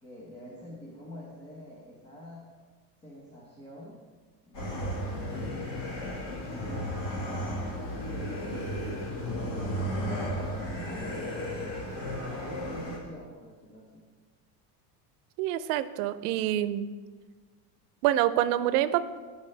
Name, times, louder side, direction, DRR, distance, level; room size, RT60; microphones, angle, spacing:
voice 1, 0.0-2.5 3.0-4.0 4.4-5.5 5.8-11.5 11.9-14.1, equal, 15° left, -4 dB, 1.1 m, -47 dB
sound 1, 4.5-13.0, equal, 45° left, 2.1 m, -34 dB
voice 2, 15.4-16.9 18.0-19.0, right 12 dB, 90° right, 14 dB, 0.6 m, -26 dB
16.0 x 5.5 x 3.3 m, 1.4 s
cardioid pair, 175°, 45 cm